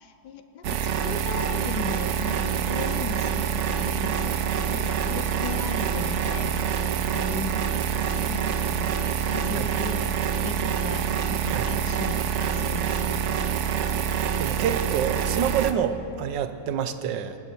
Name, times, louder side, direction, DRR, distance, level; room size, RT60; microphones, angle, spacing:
voice 1, 0.0-9.0 9.3-13.5, left 5 dB, 70° left, 9 dB, 1.5 m, -37 dB
sound 1, 0.6-15.7, right 8 dB, 65° right, 0.7 m, -26 dB
voice 2, 14.4-17.4, right 8 dB, 80° right, 10 dB, 1.4 m, -27 dB
25.0 x 12.5 x 4.5 m, 2.9 s
omnidirectional pair, 1.9 m